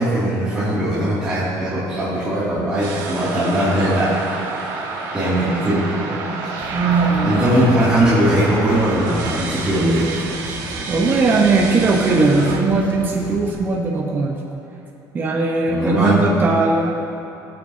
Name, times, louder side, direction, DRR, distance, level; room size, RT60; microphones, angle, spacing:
voice 1, 0.0-4.1 5.1-5.8 7.2-10.1 15.7-16.3, right 1 dB, 15° right, -13 dB, 2.5 m, -19 dB
sound 1, 2.8-12.6, right 4 dB, 75° right, 1.6 m, -29 dB
voice 2, 5.4-6.4 6.7-7.5 10.9-14.4 15.1-16.9, right 3 dB, 30° right, -1 dB, 1.0 m, -19 dB
sound 2, 6.5-13.6, left 1 dB, 20° left, 1.3 m, -35 dB
19.0 x 7.9 x 2.8 m, 2.7 s
cardioid pair, 130°, 7 cm